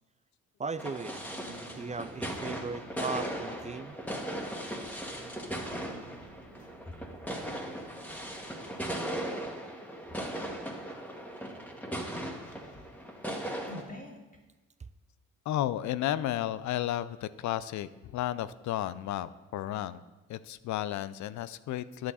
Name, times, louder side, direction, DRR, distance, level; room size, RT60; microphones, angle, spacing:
voice 1, 0.6-1.2 1.8-4.0, right 4 dB, 20° right, 13 dB, 0.5 m, -37 dB
sound 1, 0.8-13.8, right 1 dB, 5° left, 1.8 m, -38 dB
sound 2, 1.1-8.9, right 3 dB, 80° right, 1.4 m, -54 dB
sound 3, 2.3-3.7 4.7-8.9 9.4-9.7 10.0-10.7 11.0-11.1 11.4-14.4, left 1 dB, 25° left, 2.0 m, -52 dB
voice 2, 15.5-20.0 20.3-22.1, left 12 dB, 65° left, 15 dB, 0.5 m, -33 dB
10.5 x 7.6 x 4.1 m, 1.1 s
supercardioid pair, 55°, 31 cm